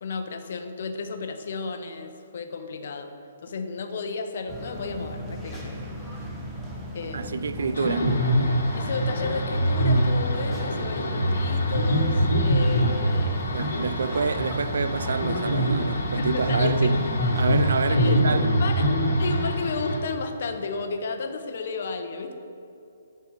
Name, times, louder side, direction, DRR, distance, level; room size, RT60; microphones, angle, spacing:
voice 1, 0.0-3.1 3.4-6.3 6.9-7.5 8.8-13.5 15.8-15.9 16.2-16.9 17.9-18.9 19.2-22.3, left 4 dB, 60° left, 0.7 m, -33 dB
sound 1, 4.5-17.7, equal, 10° right, 0.9 m, -37 dB
voice 2, 7.1-8.1 13.5-17.0 17.4-18.6, right 5 dB, 75° right, 0.3 m, -27 dB
sound 2, 7.8-20.0, equal, 85° left, 1.2 m, -24 dB
8.2 x 4.4 x 4.8 m
hypercardioid pair, 155°, 0 cm